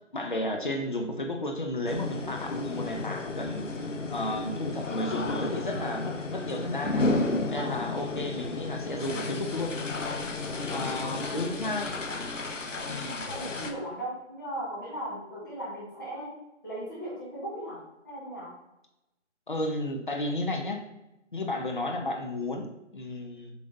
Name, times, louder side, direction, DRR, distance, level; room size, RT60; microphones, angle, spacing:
voice 1, 0.1-3.7 4.1-7.1 7.5-9.7 10.7-12.0 12.8-13.2 19.5-20.8 21.3-23.5, left 1 dB, 40° left, 3 dB, 0.8 m, -33 dB
sound 1, 1.9-13.7, left 2 dB, 85° left, 1.0 m, -32 dB
voice 2, 7.6-7.9 10.7-11.5 13.3-16.3 16.6-18.5, right 1 dB, 15° left, -8 dB, 1.3 m, -38 dB
7.9 x 5.1 x 2.6 m, 0.90 s
figure-of-eight pair, 165°, 37 cm